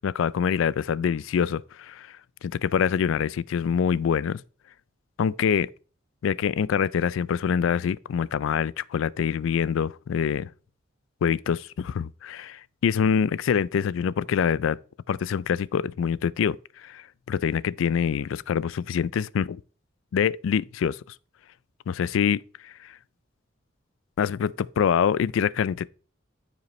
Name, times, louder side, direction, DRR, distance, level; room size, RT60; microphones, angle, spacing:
voice 1, 0.0-2.1 2.4-4.4 5.2-5.7 6.2-10.5 11.2-14.8 15.1-16.6 16.8-17.0 17.3-19.6 20.1-21.0 21.9-22.9 24.2-25.9, left 7 dB, 80° left, 0.3 m, -25 dB
13.5 x 5.1 x 3.1 m
head